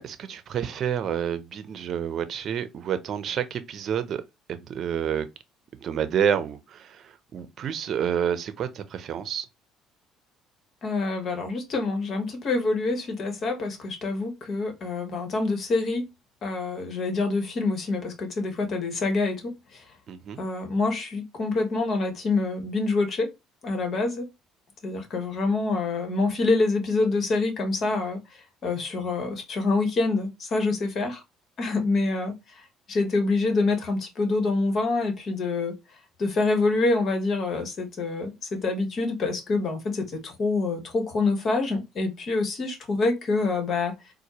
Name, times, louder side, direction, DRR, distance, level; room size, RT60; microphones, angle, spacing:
voice 1, 0.0-4.2 4.5-5.3 5.8-9.5 20.1-20.4, right 8 dB, 55° right, 0.6 m, -29 dB
voice 2, 10.8-16.0 16.4-19.8 20.4-23.3 23.6-24.2 24.8-28.2 28.6-31.2 31.6-32.3 32.9-35.8 36.2-43.9, left 3 dB, 50° left, 1.3 m, -26 dB
4.2 x 2.2 x 2.9 m
hypercardioid pair, 60°, 0 cm